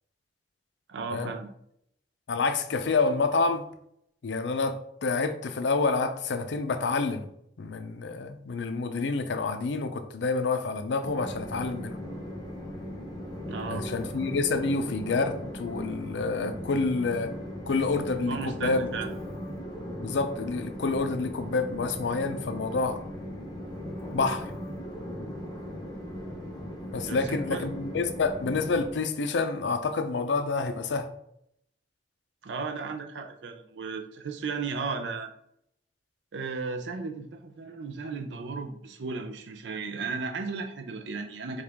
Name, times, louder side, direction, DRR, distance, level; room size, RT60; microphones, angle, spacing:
voice 1, 0.9-1.5 13.5-13.9 18.3-19.1 27.0-27.7 32.4-35.3 36.3-41.6, right 4 dB, 80° right, 5 dB, 0.5 m, -35 dB
voice 2, 2.3-3.6 4.2-7.3 7.6-12.0 13.7-17.3 17.7-18.9 20.0-23.0 24.1-24.5 26.9-31.1, left 3 dB, 80° left, 8 dB, 0.5 m, -28 dB
Train, 11.0-28.9, equal, 25° left, 0.8 m, -38 dB
4.7 x 2.4 x 3.4 m, 0.72 s
head